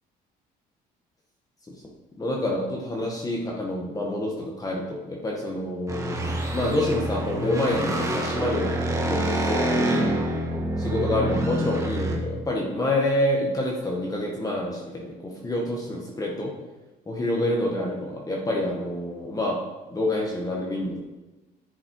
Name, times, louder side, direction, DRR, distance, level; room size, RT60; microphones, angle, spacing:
voice 1, 2.2-10.1 10.8-16.5 17.1-19.6 19.9-21.0, left 1 dB, 20° left, -2 dB, 1.7 m, -27 dB
sound 1, 5.9-12.2, right 1 dB, 20° right, 1.9 m, -27 dB
10.0 x 7.5 x 4.8 m, 1.1 s
cardioid pair, 110°, 17 cm